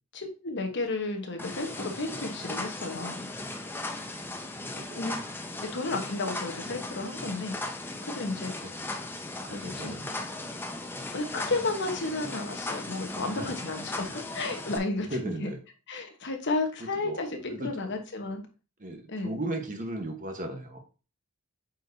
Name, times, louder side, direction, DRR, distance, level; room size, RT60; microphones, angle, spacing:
voice 1, 0.1-3.3 5.0-5.2 5.6-7.6 8.1-8.5 9.5-9.9 11.1-15.5 15.9-17.3 17.6-18.5 19.1-19.4, left 3 dB, 55° left, 4 dB, 1.2 m, -32 dB
sound 1, 1.4-14.8, left 2 dB, 10° left, 0.6 m, -37 dB
voice 2, 3.8-5.0 8.6-8.7 9.5-10.0 13.2-13.5 13.9-14.2 15.0-15.6 17.0-17.7 18.8-20.8, right 1 dB, 35° right, 4 dB, 1.2 m, -37 dB
8.1 x 4.6 x 2.7 m, 0.34 s
head